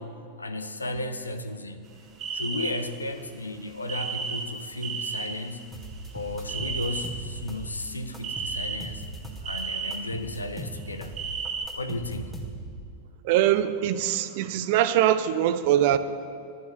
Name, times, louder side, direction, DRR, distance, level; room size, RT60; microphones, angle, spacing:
voice 1, 0.0-1.9 2.3-5.6 6.1-9.0 9.4-11.2 11.8-12.3, left 2 dB, 80° left, 9 dB, 0.7 m, -34 dB
sound 1, 2.2-3.0 3.9-5.3 5.7-7.0 7.7-7.8 8.2-9.0 9.4-9.9 10.7-11.7, right 6 dB, 30° right, 1.2 m, -33 dB
sound 2, 5.7-7.9 8.1-9.6 9.9-12.8, right 1 dB, 5° left, 1.8 m, -39 dB
voice 2, 13.2-16.0, right 11 dB, 50° right, 12 dB, 0.6 m, -22 dB
12.0 x 5.9 x 8.0 m, 2.4 s
figure-of-eight pair, 90°, 0 cm